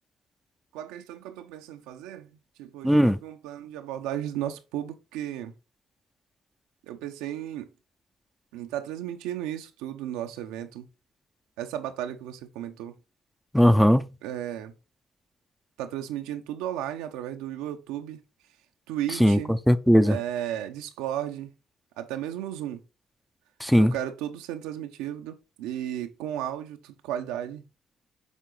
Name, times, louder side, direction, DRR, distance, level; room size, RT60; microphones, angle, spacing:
voice 1, 0.7-5.5 6.8-7.7 8.5-10.9 11.6-13.0 14.2-14.7 15.8-18.2 18.9-19.5 20.0-21.5 22.0-22.8 23.8-27.6, right 11 dB, 90° right, 0.8 m, -34 dB
voice 2, 2.8-3.2 13.5-14.1 19.2-20.2 23.6-23.9, equal, ahead, 0.6 m, -19 dB
7.3 x 3.8 x 3.8 m
supercardioid pair, 75°, 0 cm